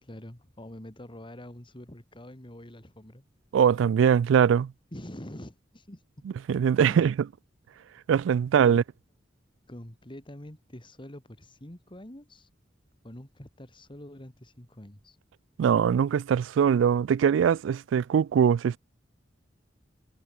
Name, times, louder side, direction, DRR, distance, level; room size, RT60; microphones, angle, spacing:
voice 1, 0.0-3.2 4.9-6.0 6.9-7.1 8.7-8.8 9.7-12.5 13.0-15.2, left 1 dB, 25° left, 2.8 m, -45 dB
voice 2, 3.5-4.7 6.5-7.1 8.1-8.8 15.6-18.8, right 7 dB, 85° right, 0.3 m, -22 dB
head